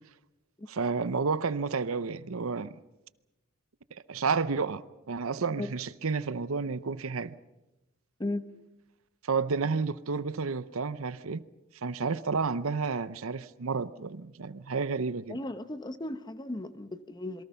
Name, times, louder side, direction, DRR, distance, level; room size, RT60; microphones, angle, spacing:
voice 1, 0.7-2.8 3.9-7.3 9.3-11.4 11.8-15.4, right 4 dB, 75° right, 0.7 m, -31 dB
voice 2, 15.3-17.4, left 1 dB, 20° left, 0.9 m, -36 dB
27.5 x 22.5 x 5.7 m
head